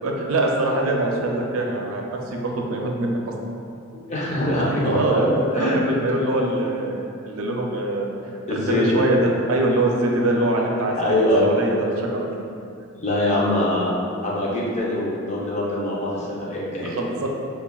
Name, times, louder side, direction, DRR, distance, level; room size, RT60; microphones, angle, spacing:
voice 1, 0.0-3.2 4.8-5.3 5.6-8.1 8.5-12.3 16.8-17.3, right 2 dB, 80° right, 0 dB, 0.5 m, -23 dB
voice 2, 3.9-5.8 8.5-8.8 11.0-11.5 12.9-13.9 14.2-16.9, left 1 dB, 35° left, -5 dB, 0.7 m, -23 dB
5.6 x 2.3 x 2.3 m, 2.5 s
head